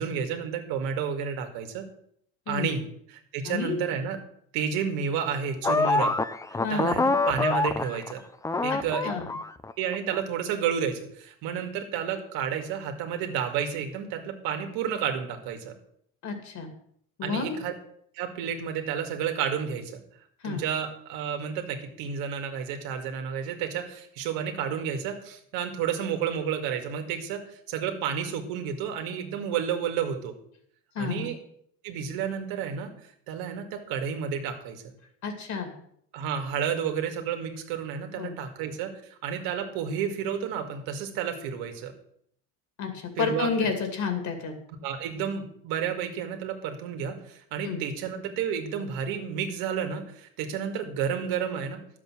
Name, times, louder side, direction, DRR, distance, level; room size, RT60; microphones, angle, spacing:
voice 1, 0.0-1.9 2.5-2.8 3.1-4.2 4.5-6.1 6.7-8.2 8.6-9.1 9.8-15.7 17.2-17.7 18.2-19.9 20.4-27.4 27.7-30.3 31.0-31.4 31.8-32.9 33.3-34.8 36.1-38.9 39.2-41.9 43.2-43.5 44.8-51.8, right 7 dB, 85° right, 5 dB, 2.1 m, -31 dB
voice 2, 3.4-3.8 6.6-6.9 8.7-9.3 16.2-16.7 17.2-17.6 20.4-20.6 30.9-31.3 35.2-35.7 38.2-38.3 42.8-44.5 47.6-47.8, left 5 dB, 55° left, 6 dB, 2.7 m, -30 dB
sound 1, 5.6-8.2 8.4-10.2, left 3 dB, 10° left, 0.4 m, -26 dB
11.5 x 7.7 x 6.1 m, 0.67 s
cardioid pair, 120°, 35 cm